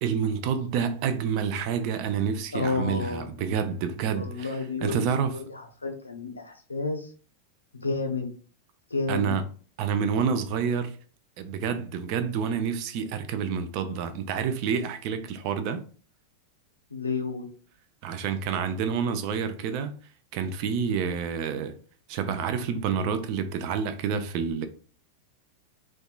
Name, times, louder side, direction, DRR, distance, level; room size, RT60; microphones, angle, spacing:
voice 1, 0.0-5.4 9.1-9.4 9.8-11.0 11.4-15.8 18.0-19.9 20.3-21.7 22.1-24.7, right 6 dB, 45° right, 0.3 m, -28 dB
voice 2, 2.5-3.3 4.1-7.1 7.7-8.3 8.9-9.4 16.9-17.5, left 4 dB, 80° left, 0.5 m, -31 dB
2.6 x 2.2 x 2.3 m
figure-of-eight pair, 90°, 0 cm